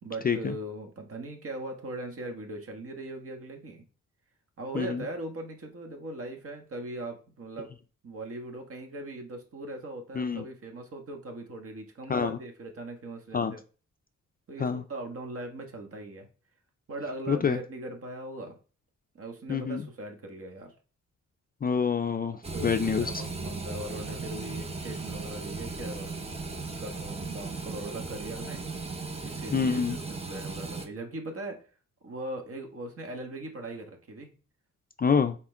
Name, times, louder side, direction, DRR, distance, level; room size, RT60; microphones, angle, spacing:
voice 1, 0.0-3.8 4.6-7.7 8.0-13.6 14.5-16.3 16.9-18.5 19.1-20.7 22.5-26.1 26.8-28.6 29.2-31.6 32.0-34.3, right 2 dB, 50° right, 3 dB, 1.5 m, -39 dB
voice 2, 17.3-17.6 19.5-19.8 21.6-23.2 29.5-30.0 35.0-35.4, left 6 dB, 30° left, 9 dB, 0.4 m, -27 dB
sound 1, 22.4-30.9, right 3 dB, 20° right, 0.8 m, -37 dB
6.0 x 4.3 x 4.5 m, 0.37 s
wide cardioid pair, 135°, 30 cm